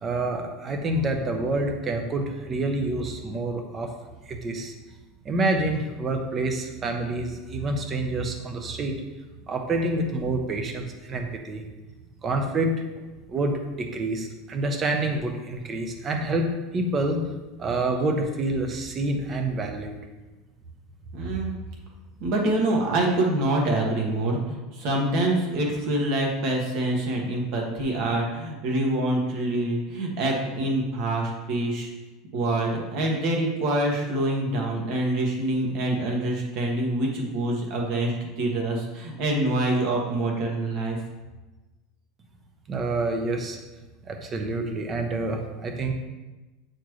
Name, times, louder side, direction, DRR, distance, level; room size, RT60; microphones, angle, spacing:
voice 1, 0.0-3.9 4.3-4.7 5.2-9.0 9.5-11.6 12.2-12.7 13.3-17.2 17.6-20.0 42.7-43.6 44.1-45.9, right 2 dB, 20° right, 4 dB, 0.8 m, -27 dB
voice 2, 21.1-21.5 22.2-31.9 32.3-41.0, right 1 dB, 50° right, 0 dB, 1.4 m, -25 dB
8.3 x 4.4 x 3.1 m, 1.1 s
supercardioid pair, 165°, 0 cm